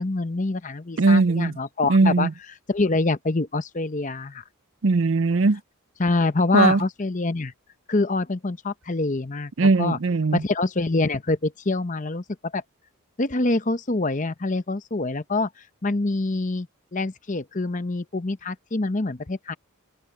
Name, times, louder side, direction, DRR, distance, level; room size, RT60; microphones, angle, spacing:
voice 1, 0.0-2.3 2.7-4.4 6.0-7.5 7.9-10.0 10.3-12.2 12.5-12.6 13.2-15.5 15.8-16.7 16.9-19.5, left 2 dB, 35° left, 0.8 m, -25 dB
voice 2, 1.0-1.5 1.9-2.3 4.8-5.6 6.5-6.8 9.6-10.4, right 3 dB, 60° right, 0.6 m, -19 dB
head